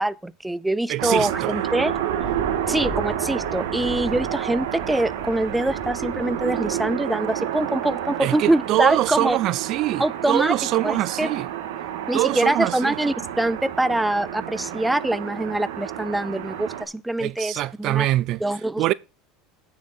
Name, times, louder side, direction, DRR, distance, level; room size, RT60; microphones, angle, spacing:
voice 1, 0.0-1.9 2.7-9.4 10.0-10.5 10.8-11.3 12.1-18.1 18.4-18.8, right 1 dB, 5° right, 0.5 m, -24 dB
voice 2, 0.9-1.5 8.2-11.5 12.1-12.9 17.2-18.4 18.8-18.9, right 15 dB, 50° right, 0.4 m, -24 dB
sound 1, 1.0-16.9, right 11 dB, 80° right, 1.8 m, -30 dB
sound 2, 1.9-6.9, equal, 35° right, 2.7 m, -39 dB
9.2 x 7.1 x 4.3 m
supercardioid pair, 120°, 0 cm